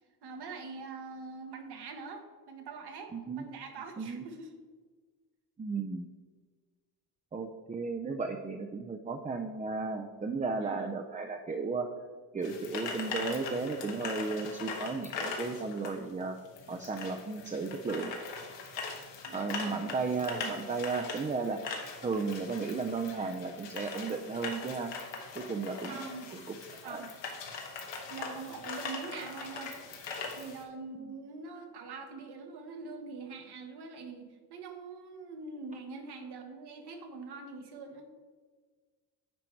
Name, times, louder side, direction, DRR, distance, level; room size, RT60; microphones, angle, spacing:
voice 1, 0.2-4.5 10.6-10.9 19.2-19.9 25.9-26.3 26.7-27.1 28.1-29.8 30.3-34.2 34.5-38.1, right 4 dB, 65° right, 5 dB, 1.3 m, -44 dB
voice 2, 3.1-3.4 4.0-4.2 5.6-6.1 7.3-11.9 12.3-16.4 16.7-18.1 19.3-21.6 22.0-24.9 25.4-26.6 26.8-27.0, right 4 dB, 20° right, 4 dB, 0.5 m, -34 dB
sound 1, 12.4-30.6, left 4 dB, 85° left, 1.4 m, -41 dB
9.5 x 4.6 x 4.5 m, 1.4 s
cardioid pair, 100°, 42 cm